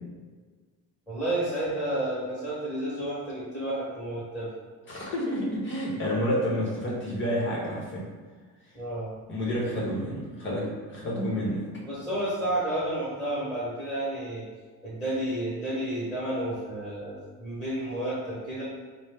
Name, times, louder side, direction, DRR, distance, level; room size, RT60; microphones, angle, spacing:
voice 1, 1.1-4.5 8.7-9.2 11.8-14.5 14.8-18.6, right 1 dB, 5° left, -10 dB, 1.2 m, -31 dB
voice 2, 4.9-8.0 9.3-11.6, equal, 35° left, -5 dB, 0.9 m, -29 dB
4.3 x 2.1 x 3.4 m, 1.4 s
cardioid pair, 130°, 35 cm